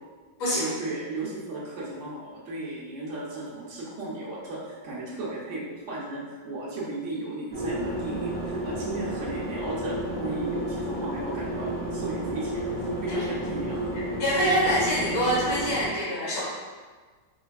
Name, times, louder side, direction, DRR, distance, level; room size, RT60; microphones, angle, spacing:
voice 1, 0.5-12.7 13.0-13.9, right 2 dB, 55° right, -7 dB, 0.8 m, -35 dB
sound 1, 7.5-15.9, right 1 dB, 10° left, 0.6 m, -31 dB
voice 2, 14.2-16.4, equal, 80° left, -7 dB, 2.0 m, -25 dB
4.4 x 3.2 x 2.3 m, 1.4 s
omnidirectional pair, 2.2 m